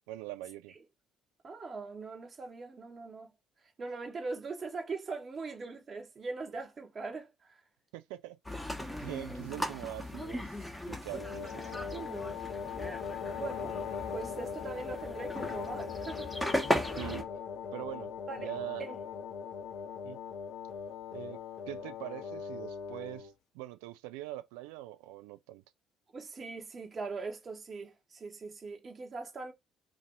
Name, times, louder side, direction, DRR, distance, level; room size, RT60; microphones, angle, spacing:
voice 1, 0.1-0.7 7.9-8.4 9.0-10.5 10.9-11.8 17.0-17.3 17.7-18.1 18.4-18.8 20.0-20.2 21.1-25.6, right 16 dB, 65° right, 0.3 m, -43 dB
voice 2, 1.4-3.3 3.8-7.6 11.9-12.4 13.4-13.8 14.1-16.3 18.3-18.5 18.8-19.0 26.1-29.5, right 4 dB, 35° right, 1.0 m, -41 dB
sound 1, 8.5-17.2, left 1 dB, 5° left, 0.9 m, -37 dB
sound 2, 11.1-23.3, left 6 dB, 55° left, 0.5 m, -40 dB
2.5 x 2.5 x 3.9 m
figure-of-eight pair, 50°, 0 cm